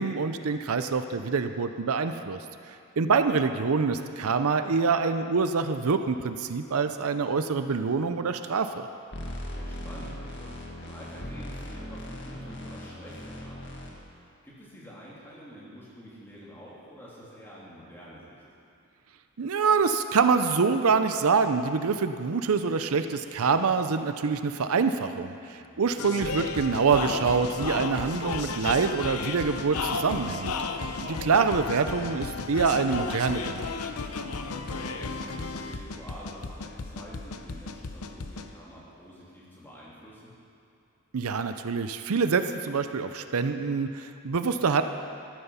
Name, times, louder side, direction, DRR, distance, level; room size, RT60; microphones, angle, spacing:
voice 1, 0.0-2.4 3.0-8.9 19.4-30.5 31.0-33.6 41.1-44.8, right 5 dB, 75° right, 9 dB, 0.6 m, -25 dB
sound 1, 9.1-13.9, left 1 dB, 55° left, 1.8 m, -39 dB
voice 2, 9.3-13.7 14.4-18.4 25.5-26.1 30.8-31.2 34.7-40.3, equal, 10° left, -7 dB, 3.0 m, -48 dB
sound 2, 26.0-38.5, left 4 dB, 85° left, 0.8 m, -34 dB
13.5 x 13.0 x 5.6 m, 2.6 s
head